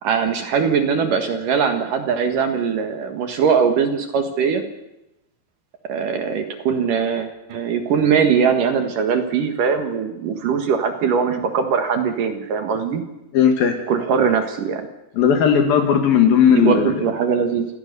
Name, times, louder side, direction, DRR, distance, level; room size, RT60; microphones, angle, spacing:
voice 1, 0.0-4.6 5.9-13.0 13.9-14.9 16.5-17.7, right 6 dB, 60° right, 7 dB, 2.9 m, -21 dB
voice 2, 13.3-13.8 15.2-16.9, left 7 dB, 65° left, 5 dB, 3.4 m, -16 dB
27.0 x 17.5 x 6.9 m, 0.92 s
omnidirectional pair, 4.8 m